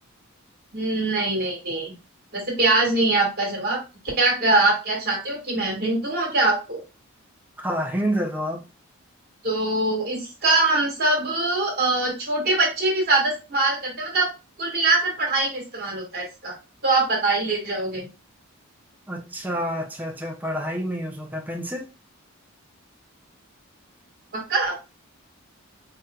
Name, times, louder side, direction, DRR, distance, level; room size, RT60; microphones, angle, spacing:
voice 1, 0.7-1.9 2.3-3.8 4.2-6.8 9.4-14.3 14.6-16.5 16.8-18.1 24.3-24.8, right 2 dB, 50° right, 1.7 m, -23 dB
voice 2, 7.6-8.6 19.1-21.9, equal, 10° right, 0.6 m, -28 dB
4.4 x 3.0 x 2.3 m
head